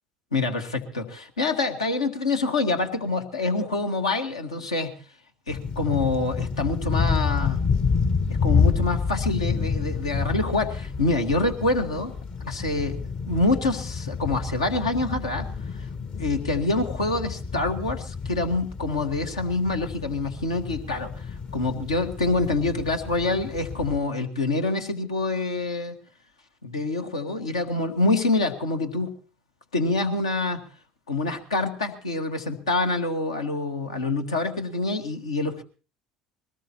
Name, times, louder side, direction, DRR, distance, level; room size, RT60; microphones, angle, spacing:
voice 1, 0.3-4.9 5.5-7.6 8.3-12.1 12.4-13.0 13.3-15.5 15.7-15.9 16.2-25.9 26.6-29.1 29.7-30.6 31.1-35.6, left 3 dB, 80° left, 5 dB, 1.5 m, -26 dB
sound 1, 5.5-24.0, left 5 dB, 35° left, 0.9 m, -29 dB
22.0 x 18.5 x 2.8 m, 0.36 s
figure-of-eight pair, 65°, 3 cm